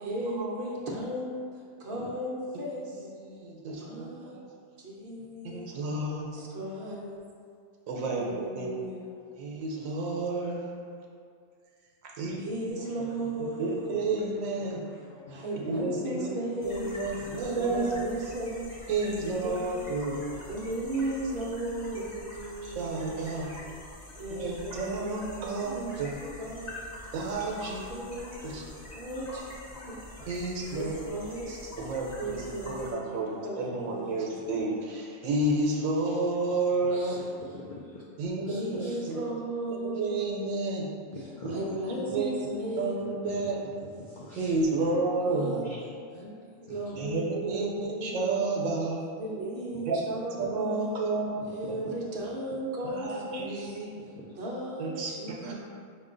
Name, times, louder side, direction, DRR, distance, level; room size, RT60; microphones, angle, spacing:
voice 1, 0.0-3.0 3.8-4.4 4.8-5.7 6.3-7.2 8.1-9.1 12.4-14.0 15.3-16.9 17.6-18.7 19.2-19.9 20.5-23.1 24.1-25.9 26.2-26.8 27.9-28.5 28.9-30.0 30.7-31.7 32.2-34.3 38.5-40.2 41.5-43.1 45.2-45.6 46.1-48.4 49.2-50.9 51.5-53.8 54.3-55.5, right 1 dB, 50° right, -3 dB, 0.7 m, -36 dB
voice 2, 2.8-4.5 5.4-6.3 7.9-8.7 9.3-10.7 12.0-12.4 12.7-12.8 13.6-14.8 15.5-16.3 16.6-18.0 18.9-20.2 22.6-23.6 24.3-26.1 27.1-27.8 28.4-28.6 30.3-30.9 31.8-37.2 38.2-39.2 39.9-40.9 41.4-41.8 42.1-43.6 44.4-45.8 47.0-49.0 49.9-50.0 50.4-51.8 52.8-53.9 54.8-55.5, right 2 dB, 80° right, -2 dB, 1.0 m, -31 dB
sound 1, 12.7-18.7, left 2 dB, 80° left, 1.0 m, -51 dB
sound 2, 16.6-32.9, left 1 dB, 35° left, 0.9 m, -45 dB
voice 3, 36.9-38.0 38.5-39.0 41.1-41.7 42.1-42.2 43.2-43.5 44.0-44.5 46.7-47.0 54.0-54.2, left 2 dB, 55° left, -7 dB, 0.6 m, -45 dB
5.2 x 2.2 x 3.7 m, 2.2 s
omnidirectional pair, 1.4 m